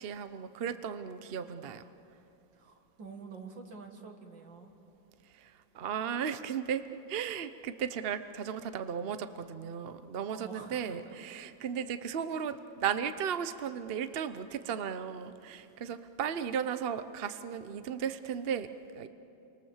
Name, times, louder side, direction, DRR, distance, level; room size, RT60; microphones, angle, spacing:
voice 1, 0.0-1.8 5.2-19.1, right 8 dB, 55° right, 11 dB, 0.6 m, -35 dB
voice 2, 2.5-4.7 10.3-11.0, right 4 dB, 70° right, 4 dB, 2.7 m, -47 dB
30.0 x 25.0 x 7.3 m, 2.9 s
omnidirectional pair, 2.1 m